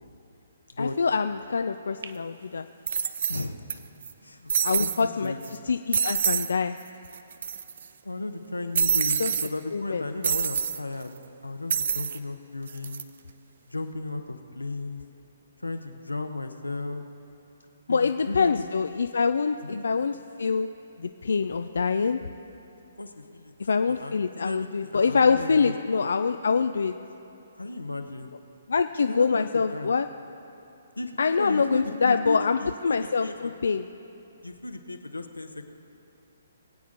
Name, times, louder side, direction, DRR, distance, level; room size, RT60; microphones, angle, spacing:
voice 1, 0.8-2.7 4.6-5.3 5.7-6.8 9.2-9.3 9.7-10.0 17.9-20.7 21.0-22.2 23.6-26.9 28.7-30.1 31.2-32.6 32.8-33.8, left 5 dB, 65° left, 9 dB, 0.4 m, -25 dB
sound 1, 2.0-2.1 2.9-3.7 4.0-4.1 4.5-5.0 5.4-5.6 5.9-6.5 6.8-6.9 7.1-7.8 8.7-9.5 10.2-10.8 11.7-12.2 12.7-13.0, right 7 dB, 55° right, 0.5 m, -26 dB
voice 2, 3.3-3.6 4.2-5.4 8.0-11.1 11.4-13.0 13.7-15.0 15.6-17.0 17.9-18.6 19.6-19.8 23.0-23.5 23.9-25.7 26.0-26.1 27.5-28.3 29.1-29.9 31.0-33.4 34.4-35.7, left 2 dB, 90° left, 7 dB, 0.9 m, -35 dB
21.0 x 8.5 x 3.9 m, 2.8 s
figure-of-eight pair, 130°, 0 cm